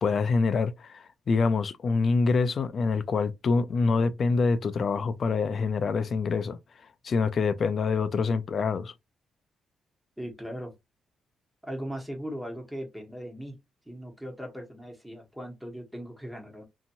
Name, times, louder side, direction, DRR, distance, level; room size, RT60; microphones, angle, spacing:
voice 1, 0.0-6.6 7.0-8.9, left 4 dB, 55° left, 0.4 m, -26 dB
voice 2, 10.2-10.7 11.6-13.6 13.8-16.6, equal, ahead, 1.2 m, -38 dB
2.8 x 2.7 x 2.6 m
cardioid pair, 90°, 0 cm